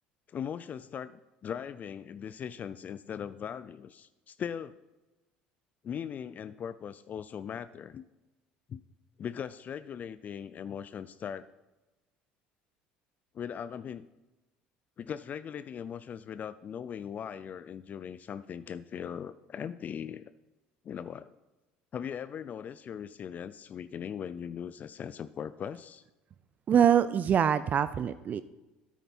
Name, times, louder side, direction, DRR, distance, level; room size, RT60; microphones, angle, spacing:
voice 1, 0.3-4.7 5.8-8.0 8.7-8.8 9.2-11.5 13.3-14.1 15.0-20.2 20.8-21.3 21.9-26.0, left 8 dB, 40° left, 14 dB, 0.4 m, -39 dB
voice 2, 26.7-28.4, right 8 dB, 40° right, 14 dB, 0.4 m, -24 dB
9.4 x 8.9 x 4.3 m, 1.1 s
supercardioid pair, 80°, 4 cm